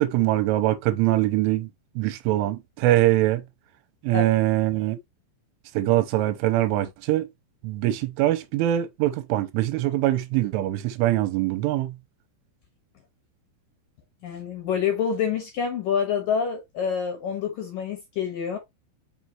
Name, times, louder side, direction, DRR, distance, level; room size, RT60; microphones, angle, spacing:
voice 1, 0.0-1.7 2.0-3.4 4.0-5.0 5.8-7.3 7.6-11.9, right 15 dB, 90° right, 3.2 m, -23 dB
voice 2, 14.2-18.6, left 7 dB, 65° left, 2.2 m, -27 dB
6.3 x 5.5 x 2.9 m
omnidirectional pair, 5.7 m